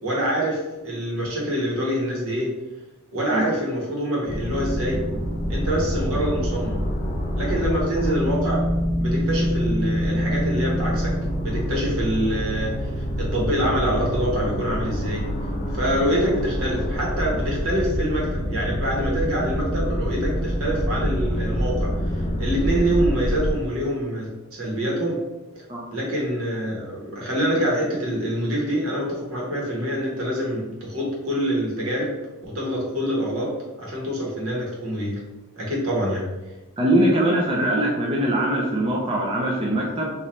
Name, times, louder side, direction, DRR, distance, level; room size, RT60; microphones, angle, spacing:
voice 1, 0.0-2.5 3.1-5.0 5.5-6.8 7.4-8.6 9.0-11.1 11.4-15.3 15.7-24.3 24.6-25.2 25.9-32.1 32.4-33.5 33.8-35.2 35.6-36.2, equal, 75° right, -3 dB, 1.3 m, -25 dB
sound 1, 4.3-23.5, equal, 30° left, 0.4 m, -26 dB
voice 2, 36.8-40.1, right 1 dB, 25° right, -3 dB, 0.5 m, -22 dB
4.1 x 2.6 x 3.1 m, 1.1 s
head